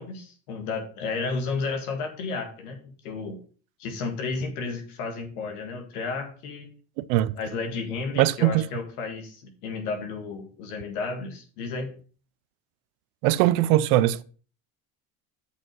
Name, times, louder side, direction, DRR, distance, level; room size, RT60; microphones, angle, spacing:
voice 1, 0.0-3.4 3.8-6.7 7.4-11.9, left 4 dB, 85° left, 1.8 m, -32 dB
voice 2, 7.0-7.3 8.2-8.6 13.2-14.2, right 14 dB, 80° right, 0.7 m, -21 dB
8.1 x 5.2 x 4.7 m
hypercardioid pair, 75°, 43 cm